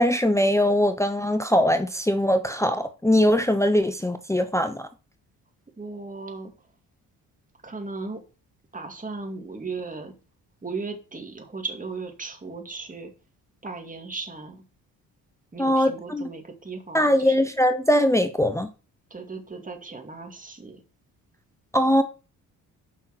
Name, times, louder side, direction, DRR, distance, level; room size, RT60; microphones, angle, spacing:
voice 1, 0.0-4.9 15.6-16.2 16.9-18.7 21.7-22.0, equal, 5° left, 0.8 m, -21 dB
voice 2, 5.8-6.5 7.6-8.2 8.7-10.1 10.6-13.1 13.6-14.6 15.5-17.4 19.1-20.8, right 4 dB, 20° right, 2.3 m, -36 dB
6.6 x 5.6 x 6.1 m
supercardioid pair, 60°, 39 cm